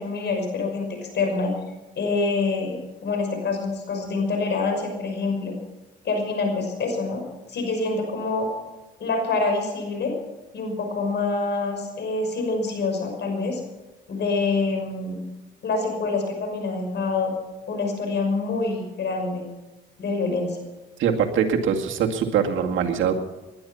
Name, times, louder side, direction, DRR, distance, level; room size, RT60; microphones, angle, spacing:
voice 1, 0.0-1.5 2.0-5.5 6.0-7.2 7.5-8.5 9.0-10.1 10.5-13.6 14.1-15.2 15.6-17.3 17.7-19.5 20.0-20.6, left 3 dB, 60° left, 4 dB, 6.0 m, -26 dB
voice 2, 21.0-23.1, right 7 dB, 80° right, 3 dB, 2.2 m, -22 dB
20.0 x 11.5 x 5.8 m, 1.1 s
cardioid pair, 90°, 20 cm